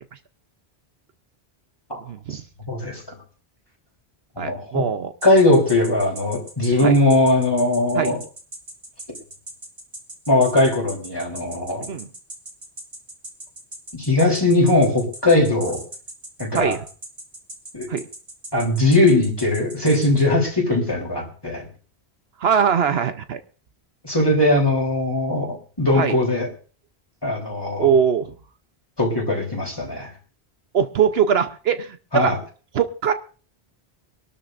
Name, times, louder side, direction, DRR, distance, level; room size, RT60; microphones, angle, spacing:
voice 1, 2.0-2.4 4.4-5.1 6.8-7.0 7.9-8.1 11.9-12.1 16.5-16.8 17.9-18.0 22.4-23.4 26.0-26.2 27.8-28.3 30.7-32.3 32.7-33.1, right 7 dB, 70° right, 10 dB, 1.0 m, -21 dB
voice 2, 2.7-3.0 4.4-4.8 5.2-8.2 10.3-11.9 13.9-15.8 16.4-16.8 17.7-17.9 18.5-21.7 24.0-26.5 27.2-27.9 29.0-30.1 32.1-32.4, left 2 dB, 20° left, 0 dB, 3.6 m, -19 dB
sound 1, 5.2-20.2, right 1 dB, 45° right, 2.8 m, -38 dB
24.0 x 12.5 x 2.6 m, 0.37 s
omnidirectional pair, 1.1 m